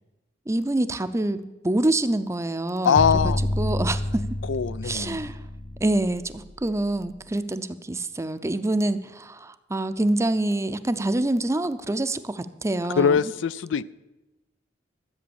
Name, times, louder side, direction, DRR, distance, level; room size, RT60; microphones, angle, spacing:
voice 1, 0.5-3.0 3.2-4.3 4.8-5.4 5.8-13.2, right 1 dB, 15° right, 12 dB, 0.6 m, -26 dB
voice 2, 2.8-3.4 4.5-5.2 13.0-13.9, left 6 dB, 90° left, 17 dB, 0.4 m, -22 dB
sound 1, 3.0-7.1, left 1 dB, 35° left, 0.6 m, -29 dB
13.5 x 8.0 x 7.0 m, 1.0 s
head